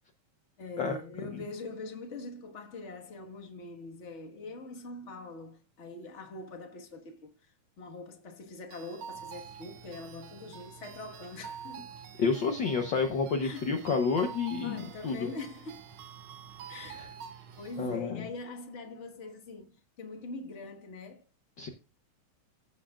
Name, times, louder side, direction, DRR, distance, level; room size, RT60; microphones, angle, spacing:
voice 1, 0.6-7.3 7.8-11.9 13.4-13.7 14.6-15.9 16.7-17.0 17.6-21.2, left 3 dB, 40° left, 1.0 m, -43 dB
sound 1, 8.7-17.8, right 8 dB, 90° right, 1.1 m, -48 dB
sound 2, 9.1-18.0, right 6 dB, 65° right, 4.3 m, -54 dB
voice 2, 12.2-15.3 17.0-17.1 17.8-18.2 21.6-21.7, left 5 dB, 75° left, 1.0 m, -29 dB
15.5 x 7.7 x 2.4 m
omnidirectional pair, 3.5 m